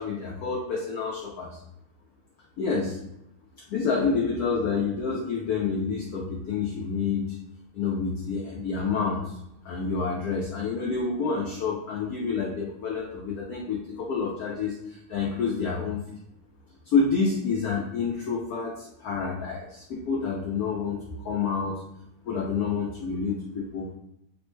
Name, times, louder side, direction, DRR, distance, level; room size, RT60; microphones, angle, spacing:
voice 1, 0.0-1.6 2.6-3.0 3.7-7.4 7.7-9.4 9.6-16.0 16.9-21.8 22.2-23.9, left 5 dB, 90° left, -2 dB, 0.8 m, -28 dB
3.3 x 2.1 x 3.1 m, 0.81 s
omnidirectional pair, 2.2 m